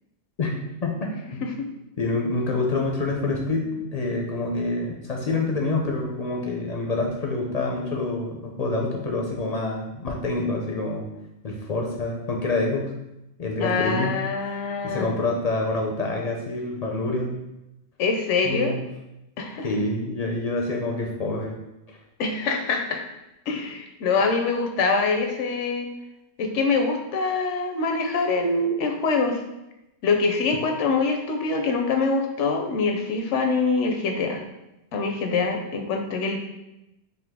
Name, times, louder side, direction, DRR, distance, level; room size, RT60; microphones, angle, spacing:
voice 1, 0.8-1.4 2.0-11.1 11.4-12.9 13.4-14.2 14.8-17.4 18.4-18.8 19.6-21.6 21.9-22.0, left 2 dB, 50° left, 0 dB, 0.5 m, -27 dB
voice 2, 13.6-15.2 18.0-18.8 19.4-19.7 22.2-23.0 23.5-25.9 26.4-29.4 30.0-34.4 34.9-36.4, left 4 dB, 85° left, 4 dB, 0.9 m, -24 dB
3.9 x 2.7 x 3.5 m, 0.92 s
omnidirectional pair, 1.2 m